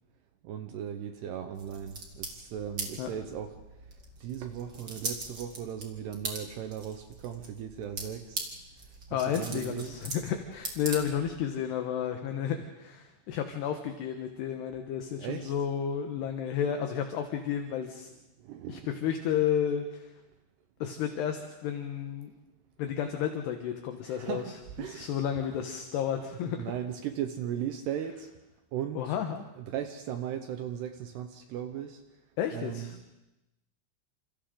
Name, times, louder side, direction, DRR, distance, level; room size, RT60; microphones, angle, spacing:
voice 1, 0.4-3.5 4.2-8.4 9.1-10.0 15.2-15.5 18.4-18.9 24.0-25.1 26.6-28.3 28.7-29.2 29.6-32.0 32.5-33.2, right 9 dB, 75° right, 7 dB, 2.5 m, -37 dB
sound 1, 1.5-11.5, right 3 dB, 30° right, 2.1 m, -41 dB
voice 2, 9.1-18.1 18.7-20.1 20.8-22.3 22.8-24.4 24.8-26.7 28.9-29.4 32.4-33.0, left 9 dB, 70° left, 5 dB, 2.9 m, -32 dB
29.0 x 27.0 x 3.8 m, 0.96 s
omnidirectional pair, 5.7 m